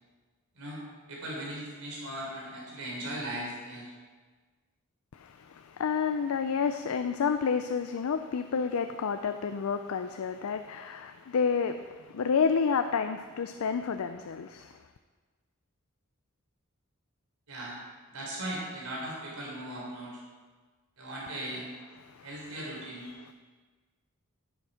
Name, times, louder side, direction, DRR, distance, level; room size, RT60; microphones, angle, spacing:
voice 1, 0.5-3.9 17.5-17.8 18.1-20.2 21.0-21.7 22.2-23.0, right 1 dB, 80° right, -3 dB, 3.6 m, -38 dB
voice 2, 5.1-14.8 22.0-22.3, left 6 dB, 75° left, 8 dB, 0.4 m, -30 dB
10.5 x 7.2 x 5.0 m, 1.4 s
head